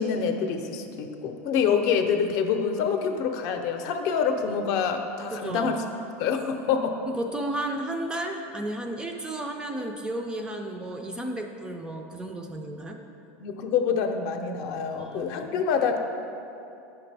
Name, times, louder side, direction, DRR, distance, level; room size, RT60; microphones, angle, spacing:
voice 1, 0.0-5.8 6.2-7.0 13.4-16.0, left 6 dB, 50° left, 5 dB, 0.6 m, -26 dB
voice 2, 5.3-5.7 7.1-13.0 15.0-15.6, right 1 dB, 10° right, 3 dB, 0.3 m, -33 dB
8.5 x 5.9 x 3.3 m, 2.7 s
supercardioid pair, 155°, 8 cm